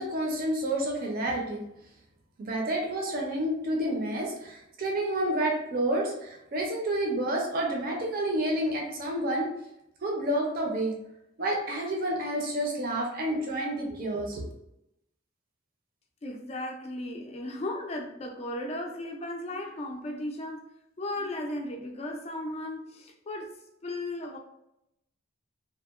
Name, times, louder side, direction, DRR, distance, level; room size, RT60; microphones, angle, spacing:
voice 1, 0.0-1.6 2.4-9.5 10.0-10.9 11.4-14.4, right 1 dB, 45° right, -1 dB, 0.5 m, -29 dB
voice 2, 16.2-20.7 21.0-23.6 23.8-24.4, left 1 dB, 30° left, 3 dB, 0.3 m, -36 dB
2.8 x 2.0 x 2.3 m, 0.83 s
head